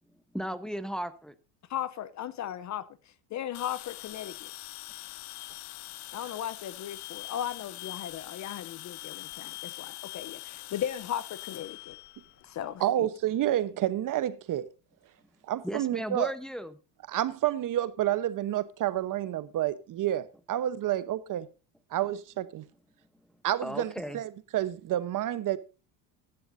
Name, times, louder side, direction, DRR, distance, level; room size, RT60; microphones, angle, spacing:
voice 1, 0.3-1.3 15.6-16.7 23.6-24.2, equal, ahead, 0.9 m, -35 dB
voice 2, 1.7-2.9 3.3-4.5 6.1-12.0 12.4-13.1, left 10 dB, 35° left, 0.7 m, -36 dB
sound 1, 3.5-12.8, left 19 dB, 70° left, 0.9 m, -43 dB
voice 3, 12.8-14.7 15.4-16.3 17.1-21.5 21.9-22.6 23.4-25.6, right 12 dB, 40° right, 1.0 m, -29 dB
15.5 x 11.5 x 2.6 m
supercardioid pair, 115°, 48 cm